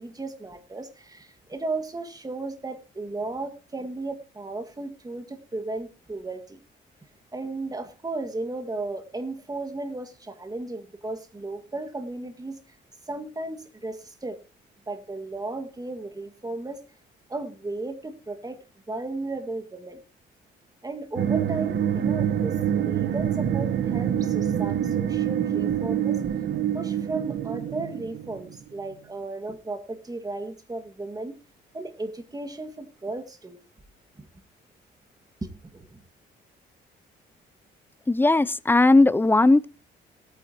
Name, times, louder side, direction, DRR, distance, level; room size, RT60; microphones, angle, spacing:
voice 1, 0.0-6.6 7.3-12.6 13.1-14.4 14.9-16.8 17.3-20.0 20.8-26.2 26.7-31.4 31.7-33.6 34.2-34.3 35.4-36.0, right 2 dB, 20° right, 1.9 m, -35 dB
sound 1, 21.2-28.7, right 9 dB, 65° right, 1.1 m, -26 dB
voice 2, 38.1-39.7, left 2 dB, 10° left, 0.6 m, -18 dB
19.0 x 9.1 x 2.9 m
cardioid pair, 90°, 20 cm